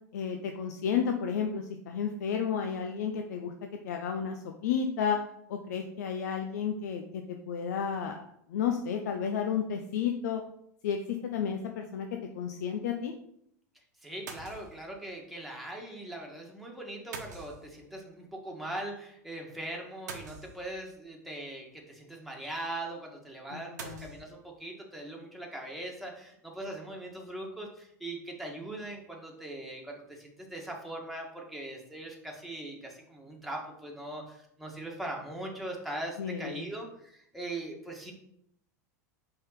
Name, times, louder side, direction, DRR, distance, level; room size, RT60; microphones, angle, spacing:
voice 1, 0.1-5.2 5.5-8.2 8.5-10.4 10.8-12.1 12.3-13.1 23.5-24.1 36.2-36.6, left 7 dB, 75° left, 4 dB, 0.6 m, -32 dB
sound 1, 11.3-11.6 14.3-14.9 17.1-18.0 20.1-21.0 23.8-24.2, right 5 dB, 80° right, 1.1 m, -44 dB
voice 2, 14.0-38.1, right 1 dB, ahead, -2 dB, 1.8 m, -40 dB
5.4 x 3.8 x 5.8 m, 0.74 s
hypercardioid pair, 100°, 9 cm